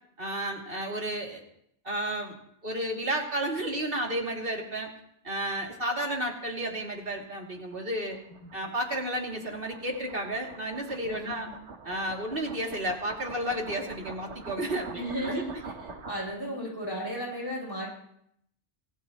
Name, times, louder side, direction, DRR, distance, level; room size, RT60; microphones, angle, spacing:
voice 1, 0.2-1.4 1.8-2.3 2.6-4.9 5.2-8.2 8.5-11.5 11.8-15.4, right 1 dB, 55° right, -1 dB, 3.0 m, -32 dB
sound 1, 6.5-16.5, right 4 dB, 85° right, 1.6 m, -46 dB
voice 2, 11.1-11.5 15.0-15.5 16.0-17.9, equal, 20° left, -3 dB, 7.5 m, -34 dB
25.0 x 17.0 x 3.0 m, 0.72 s
omnidirectional pair, 1.2 m